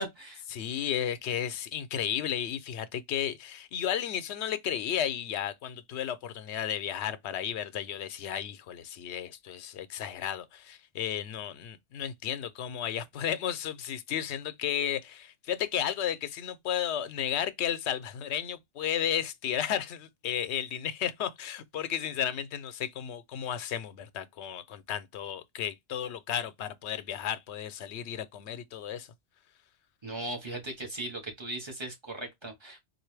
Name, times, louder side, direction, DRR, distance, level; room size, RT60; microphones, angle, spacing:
voice 1, 0.0-0.4 30.0-32.8, right 1 dB, 25° right, 1.5 m, -38 dB
voice 2, 0.5-29.1, left 9 dB, 80° left, 0.9 m, -33 dB
3.9 x 2.5 x 3.2 m
omnidirectional pair, 1.1 m